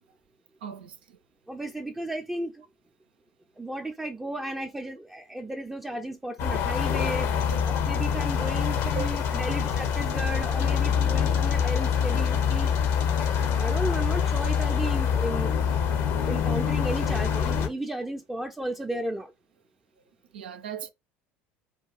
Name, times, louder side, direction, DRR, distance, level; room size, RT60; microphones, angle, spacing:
voice 1, 0.6-1.2 9.0-9.1 9.5-9.6 20.3-20.9, right 9 dB, 85° right, 0.5 m, -37 dB
voice 2, 1.5-2.6 3.6-7.3 7.6-12.7 13.6-15.5 16.3-19.3, right 1 dB, 5° right, 0.5 m, -34 dB
sound 1, 6.4-17.7, left 7 dB, 60° left, 0.8 m, -25 dB
2.9 x 2.3 x 4.1 m
hypercardioid pair, 80°, 5 cm